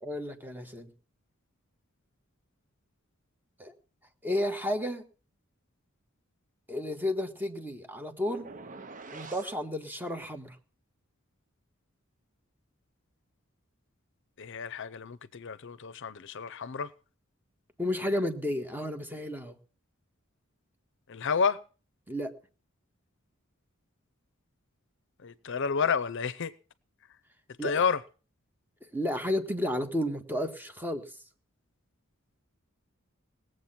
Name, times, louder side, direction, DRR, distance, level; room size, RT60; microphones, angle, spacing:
voice 1, 0.0-0.9 3.6-3.7 4.2-5.1 6.7-8.5 9.1-10.6 17.8-19.5 22.1-22.3 27.6-27.8 28.8-31.1, left 1 dB, 10° right, 1.6 m, -32 dB
sound 1, 8.3-9.6, right 4 dB, 40° right, 0.9 m, -45 dB
voice 2, 14.4-16.9 21.1-21.6 25.2-26.5 27.6-28.0, left 6 dB, 60° left, 0.6 m, -30 dB
19.0 x 7.9 x 5.8 m
head